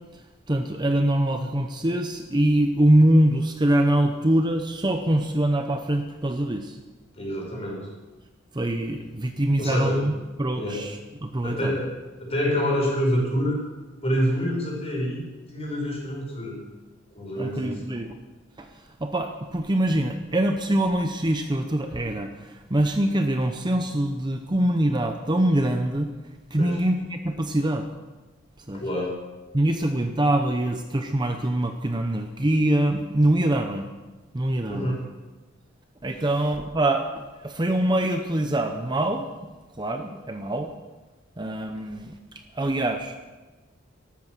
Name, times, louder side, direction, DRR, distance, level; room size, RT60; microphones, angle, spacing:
voice 1, 0.0-6.8 8.5-10.1 10.4-11.8 17.4-18.2 18.6-26.1 26.5-27.9 28.7-28.8 29.5-33.9 34.3-35.0 36.0-39.3 39.8-40.7 41.4-43.3, right 1 dB, 20° right, 5 dB, 0.8 m, -24 dB
voice 2, 7.1-7.9 9.6-10.0 10.5-10.8 11.4-11.9 12.2-13.6 14.0-16.6 17.1-17.8 26.5-26.8 28.7-29.2 34.7-35.0, equal, 30° left, -2 dB, 5.4 m, -27 dB
13.0 x 13.0 x 6.1 m, 1.2 s
head